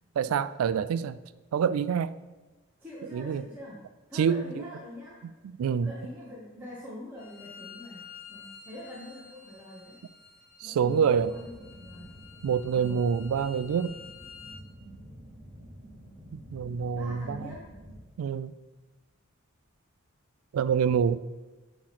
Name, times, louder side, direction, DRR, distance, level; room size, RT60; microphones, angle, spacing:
voice 1, 0.2-1.2 1.5-2.1 3.1-3.5 4.1-4.6 5.6-5.9 10.6-11.4 12.4-13.9 16.3-17.5 18.2-18.5 20.5-21.2, right 7 dB, 85° right, 17 dB, 0.3 m, -26 dB
voice 2, 2.8-3.8 4.1-5.2 5.8-10.0 10.6-12.1 12.7-13.0 16.9-17.6, left 1 dB, 10° right, -7 dB, 1.0 m, -44 dB
Bowed string instrument, 7.2-14.6, left 6 dB, 45° left, 1.1 m, -50 dB
sound 1, 10.8-18.0, equal, 35° right, 1.1 m, -49 dB
8.5 x 3.1 x 5.8 m, 1.2 s
head